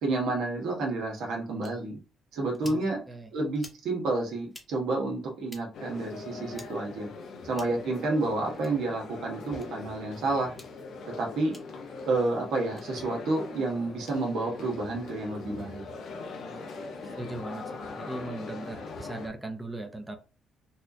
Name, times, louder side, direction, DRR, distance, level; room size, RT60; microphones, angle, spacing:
voice 1, 0.0-2.0 2.3-3.0 3.3-7.1 7.4-10.5 11.2-11.5 12.1-15.8, right 2 dB, 80° right, 1.3 m, -30 dB
sound 1, 1.6-1.7 2.5-2.8 3.6-3.8 4.5-4.7 5.5-5.6 6.5-6.7 7.5-7.8 8.5-8.7 9.6-9.7 10.5-10.7 11.5-11.6 12.6-12.9, left 1 dB, 10° left, 1.1 m, -48 dB
voice 2, 2.6-3.3 16.5-16.9 17.2-20.2, right 2 dB, 10° right, 0.7 m, -39 dB
sound 2, 5.7-19.3, left 4 dB, 70° left, 0.9 m, -41 dB
4.0 x 2.4 x 2.7 m
cardioid pair, 90°, 0 cm